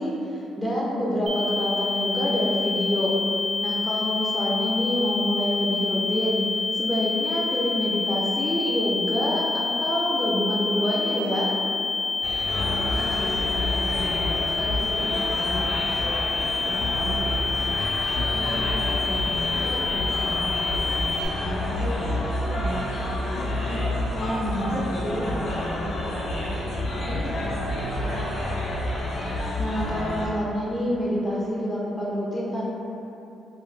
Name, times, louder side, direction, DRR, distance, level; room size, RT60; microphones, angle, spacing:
voice 1, 0.0-3.1 3.6-11.5 24.1-25.3 29.3-32.6, equal, 5° left, -7 dB, 0.4 m, -27 dB
sound 1, 1.3-21.3, left 4 dB, 60° right, 0.5 m, -27 dB
sound 2, 12.2-30.3, left 1 dB, 50° left, 0.6 m, -29 dB
voice 2, 12.5-16.2 16.5-21.0 21.3-22.2 22.4-24.1 24.7-26.5 26.9-29.0, equal, 85° right, -13 dB, 1.1 m, -36 dB
2.4 x 2.1 x 3.1 m, 2.9 s
cardioid pair, 90°, 0 cm